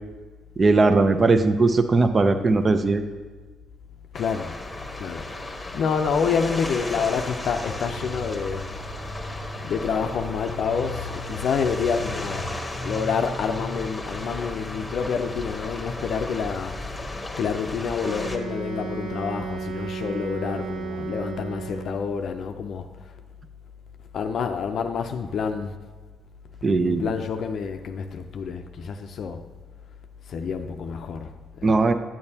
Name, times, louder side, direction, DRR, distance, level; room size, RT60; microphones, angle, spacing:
voice 1, 0.6-3.0 26.6-27.0 31.6-31.9, right 3 dB, 35° right, 0.6 m, -19 dB
voice 2, 4.1-4.6 5.0-8.7 9.6-12.5 12.8-23.1 24.1-25.8 26.8-29.5 30.3-31.9, left 6 dB, 60° left, 0.5 m, -28 dB
sound 1, 4.1-18.4, left 2 dB, 15° left, 1.1 m, -34 dB
Wind instrument woodwind instrument, 18.0-22.2, right 4 dB, 85° right, 0.9 m, -34 dB
8.9 x 8.7 x 2.8 m
cardioid pair, 80°, 0 cm